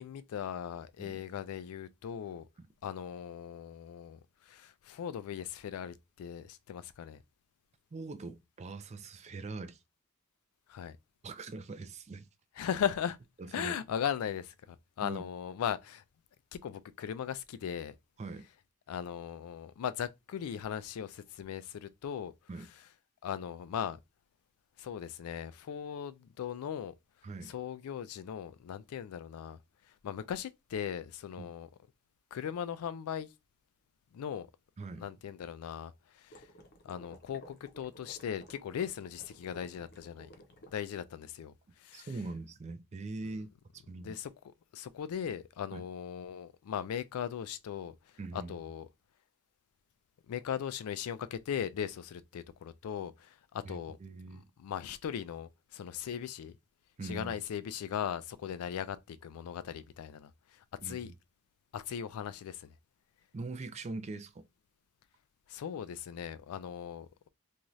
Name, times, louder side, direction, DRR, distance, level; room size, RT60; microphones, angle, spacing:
voice 1, 0.0-2.5 2.8-7.2 10.7-11.0 12.6-13.2 13.5-16.0 16.5-17.9 18.9-22.3 22.6-22.7 23.2-24.0 24.8-26.9 27.4-29.6 29.9-31.7 32.3-33.3 34.1-34.5 35.0-36.5 36.8-40.3 40.7-42.1 44.0-48.9 50.3-54.0 54.3-56.6 57.0-61.1 61.7-62.7 65.5-67.3, left 8 dB, 85° left, 0.3 m, -38 dB
voice 2, 7.9-9.8 11.2-12.3 13.4-13.7 15.0-15.2 18.2-18.4 22.5-22.7 27.2-27.5 31.4-31.5 34.8-35.1 41.9-43.5 43.7-44.2 45.7-45.8 48.2-48.6 53.6-54.4 57.0-57.3 60.8-61.1 63.3-64.5, right 3 dB, 30° right, 0.4 m, -42 dB
sound 1, 36.3-40.7, equal, 50° left, 0.6 m, -55 dB
2.6 x 2.3 x 3.0 m
head